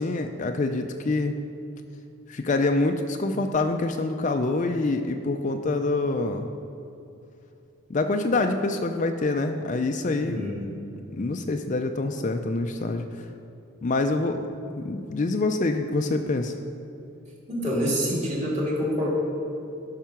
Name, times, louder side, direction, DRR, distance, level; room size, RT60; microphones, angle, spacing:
voice 1, 0.0-1.3 2.3-6.5 7.9-10.4 11.1-13.0 13.8-16.5, left 2 dB, 35° left, 6 dB, 0.4 m, -26 dB
voice 2, 10.2-10.6 17.5-19.1, equal, 30° right, -4 dB, 2.4 m, -26 dB
13.5 x 5.7 x 5.8 m, 2.8 s
head